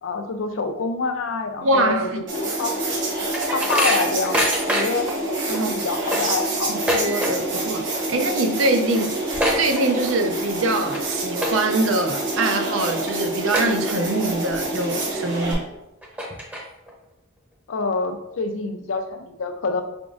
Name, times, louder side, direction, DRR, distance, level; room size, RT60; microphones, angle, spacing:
voice 1, 0.0-2.8 3.5-5.1 5.5-6.8 17.7-19.8, left 3 dB, 85° left, 6 dB, 0.5 m, -26 dB
voice 2, 1.6-2.2 5.5-5.7 6.1-6.2 6.7-9.2 9.5-15.6, right 2 dB, 80° right, 5 dB, 0.6 m, -24 dB
sound 1, 2.3-15.5, right 1 dB, 65° right, 1.2 m, -27 dB
sound 2, 2.7-5.1 5.5-5.6 5.9-7.6 7.9-8.3 8.6-8.7 8.9-10.3 10.7-11.0 11.4-11.9 12.4-12.5 13.1-13.2 13.5-14.3 14.7-14.8 15.5-15.6 16.0-16.9, equal, 5° right, 0.7 m, -25 dB
4.8 x 3.5 x 2.5 m, 0.89 s
head